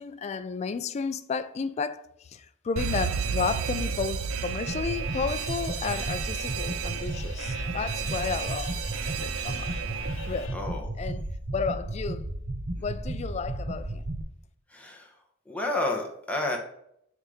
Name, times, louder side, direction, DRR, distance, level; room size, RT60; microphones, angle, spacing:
voice 1, 0.0-8.8 9.1-9.7 10.3-10.5 11.0-11.2 11.5-12.3 12.8-14.0, left 5 dB, 35° left, 0.3 m, -32 dB
Alarm, 2.8-10.5, right 7 dB, 80° right, 0.4 m, -33 dB
sound 1, 4.7-14.2, right 1 dB, 40° right, 0.6 m, -34 dB
sound 2, 5.0-10.6, left 4 dB, 75° left, 0.8 m, -45 dB
voice 2, 10.5-10.9 14.7-16.6, left 2 dB, 5° left, 1.0 m, -31 dB
7.1 x 2.8 x 4.9 m
head